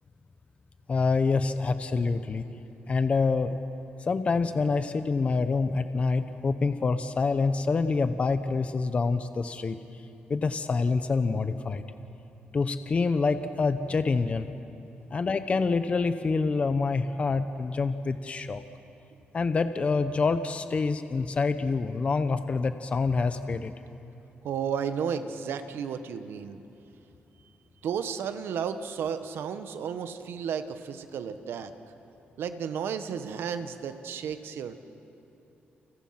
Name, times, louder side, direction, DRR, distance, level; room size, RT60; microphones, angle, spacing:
voice 1, 0.9-2.5 2.9-3.6 4.1-9.8 10.3-11.8 12.5-14.5 15.1-18.6 19.3-23.7, left 4 dB, 35° left, 10 dB, 0.9 m, -26 dB
voice 2, 24.4-26.6 27.8-31.7 32.4-34.8, right 7 dB, 85° right, 9 dB, 1.4 m, -33 dB
30.0 x 29.0 x 6.0 m, 2.9 s
wide cardioid pair, 140°, 4 cm